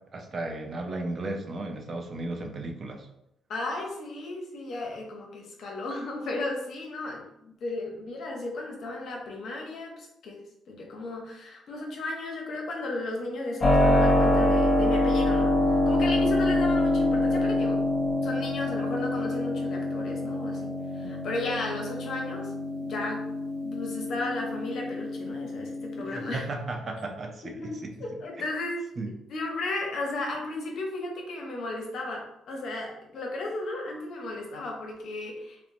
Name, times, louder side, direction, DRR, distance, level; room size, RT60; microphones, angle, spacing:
voice 1, 0.1-3.1 26.0-27.9 29.0-29.1, right 2 dB, 40° right, 3 dB, 0.4 m, -35 dB
voice 2, 3.5-10.4 10.7-17.8 18.2-22.5 22.8-23.2 23.6-26.5 27.4-28.8 29.3-35.6, left 2 dB, 65° left, 0 dB, 0.6 m, -34 dB
Keyboard (musical), 13.6-26.3, left 1 dB, 30° left, 0.7 m, -26 dB
2.8 x 2.0 x 2.5 m, 0.84 s
cardioid pair, 90°, 0 cm